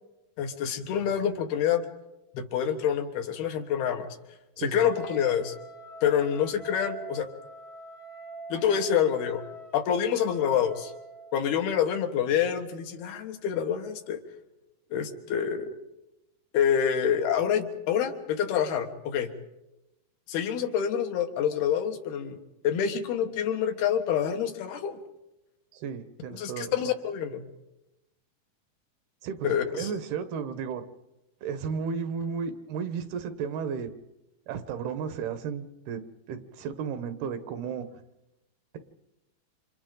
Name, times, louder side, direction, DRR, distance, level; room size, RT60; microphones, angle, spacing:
voice 1, 0.4-1.8 2.3-4.1 4.6-5.5 6.0-7.3 8.5-9.4 9.7-10.9 11.3-14.2 14.9-15.7 16.5-19.3 20.3-22.4 22.6-25.0 26.3-27.4 29.4-29.9, left 8 dB, 80° left, 5 dB, 3.4 m, -27 dB
voice 2, 4.6-4.9 25.7-26.8 29.2-30.8 31.4-33.9 34.5-36.0 36.3-37.9, right 6 dB, 85° right, 10 dB, 3.2 m, -33 dB
Wind instrument woodwind instrument, 4.8-11.4, right 2 dB, 30° left, 0.8 m, -44 dB
29.0 x 26.5 x 3.9 m, 0.95 s
omnidirectional pair, 4.5 m